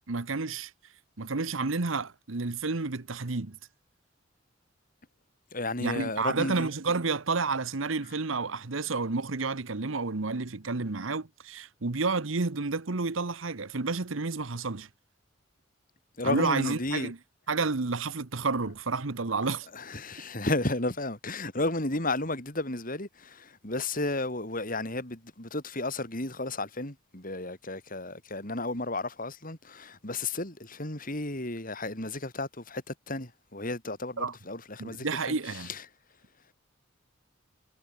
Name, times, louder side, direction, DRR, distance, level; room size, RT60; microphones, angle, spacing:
voice 1, 0.1-0.7 1.2-3.6 5.8-14.9 16.2-17.2 17.5-19.7 34.2-34.3 34.8-35.7, right 4 dB, 80° right, 1.2 m, -30 dB
voice 2, 5.5-6.7 16.2-17.1 19.7-35.8, left 2 dB, 45° left, 5.5 m, -33 dB
head